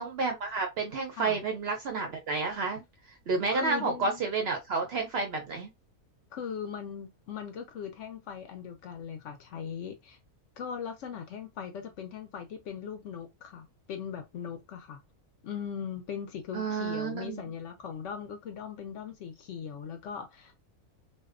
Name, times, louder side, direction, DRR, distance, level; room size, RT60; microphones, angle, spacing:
voice 1, 0.0-2.8 3.3-5.7 16.5-17.4, right 4 dB, 65° right, 0.6 m, -30 dB
voice 2, 3.5-4.2 6.3-10.2 10.6-15.0 15.4-20.6, left 7 dB, 65° left, 0.8 m, -39 dB
2.6 x 2.1 x 2.4 m
omnidirectional pair, 1.6 m